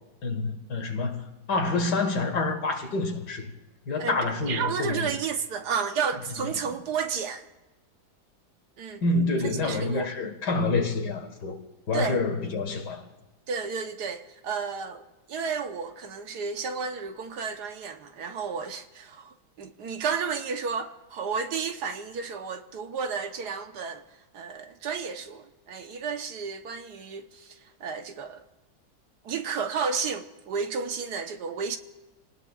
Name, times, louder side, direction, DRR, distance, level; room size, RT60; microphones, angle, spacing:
voice 1, 0.2-3.5 3.9-5.1 9.0-11.6 11.9-13.0, left 3 dB, 75° left, 2.2 m, -27 dB
voice 2, 4.5-7.5 8.8-9.0 9.6-10.1 11.9-12.2 13.5-24.0 24.3-28.4 29.2-31.8, right 6 dB, 70° right, 1.5 m, -32 dB
28.5 x 19.0 x 2.4 m
omnidirectional pair, 1.8 m